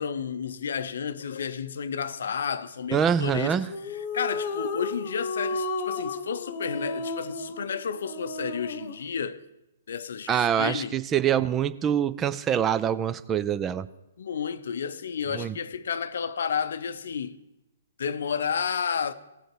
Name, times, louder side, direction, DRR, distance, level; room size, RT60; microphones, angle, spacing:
voice 1, 0.0-3.6 3.9-9.4 9.9-11.0 14.2-17.4 18.0-19.1, left 7 dB, 60° left, 0.6 m, -31 dB
voice 2, 2.9-3.7 10.3-13.9 15.3-15.5, right 9 dB, 20° right, 0.3 m, -25 dB
sound 1, 3.7-9.1, left 3 dB, 40° left, 1.0 m, -33 dB
16.5 x 6.4 x 4.6 m
figure-of-eight pair, 125°, 0 cm